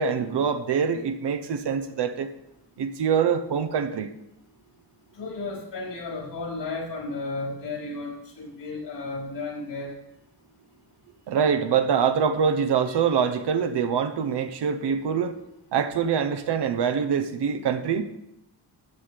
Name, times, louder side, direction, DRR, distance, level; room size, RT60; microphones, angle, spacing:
voice 1, 0.0-2.3 2.8-4.1 11.3-15.3 15.7-18.0, right 7 dB, 80° right, 7 dB, 0.9 m, -24 dB
voice 2, 5.2-9.9, left 3 dB, 80° left, -3 dB, 4.8 m, -33 dB
13.0 x 9.4 x 3.4 m, 0.84 s
wide cardioid pair, 160°, 41 cm